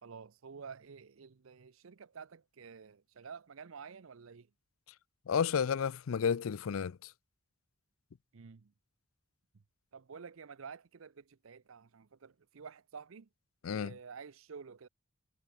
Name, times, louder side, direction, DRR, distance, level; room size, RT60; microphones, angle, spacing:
voice 1, 0.0-4.5 8.3-8.7 9.9-13.3 13.7-14.9, right 6 dB, 75° right, 0.6 m, -50 dB
voice 2, 5.3-7.1 13.6-13.9, left 7 dB, 80° left, 0.4 m, -32 dB
head